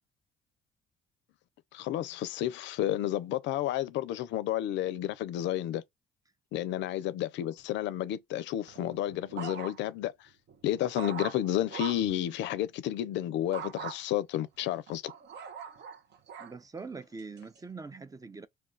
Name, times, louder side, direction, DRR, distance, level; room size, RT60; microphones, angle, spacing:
voice 1, 1.7-5.8 6.5-10.1 10.6-15.1, left 12 dB, 75° left, 0.4 m, -31 dB
sound 1, 8.7-10.0 10.5-12.2 13.5-14.0 14.6-16.6 17.2-17.6, right 7 dB, 65° right, 0.7 m, -42 dB
voice 2, 16.4-18.5, right 4 dB, 20° right, 0.5 m, -43 dB
2.3 x 2.2 x 3.8 m
hypercardioid pair, 50°, 19 cm